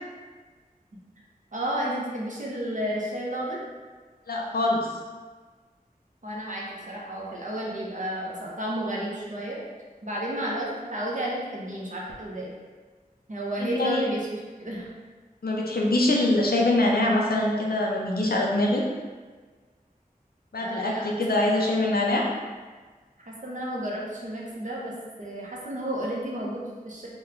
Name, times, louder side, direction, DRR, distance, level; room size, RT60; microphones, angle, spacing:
voice 1, 1.5-3.6 6.2-9.6 10.0-12.5 13.3-14.3 14.6-14.9 20.6-21.1 23.3-24.9 25.2-27.1, right 1 dB, 55° right, -4 dB, 0.8 m, -32 dB
voice 2, 4.3-4.9 13.6-14.0 15.4-18.8 20.5-22.3, left 1 dB, 90° left, -1 dB, 0.5 m, -24 dB
3.0 x 2.2 x 3.7 m, 1.4 s
wide cardioid pair, 45°, 15 cm